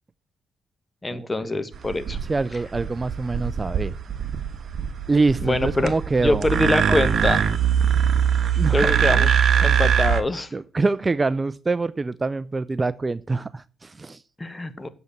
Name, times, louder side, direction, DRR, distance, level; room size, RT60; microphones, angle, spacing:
voice 1, 1.0-2.2 5.4-5.9 6.2-7.4 8.7-10.5 14.4-14.9, left 2 dB, 15° left, 11 dB, 1.5 m, -24 dB
sound 1, 1.7-10.2, right 8 dB, 55° right, 1.3 m, -22 dB
voice 2, 2.3-3.9 5.1-6.5 8.6-9.3 9.6-9.7 10.5-14.2, right 3 dB, 25° right, 16 dB, 0.5 m, -25 dB
8.3 x 7.8 x 8.6 m, 0.38 s
cardioid pair, 90°, 0 cm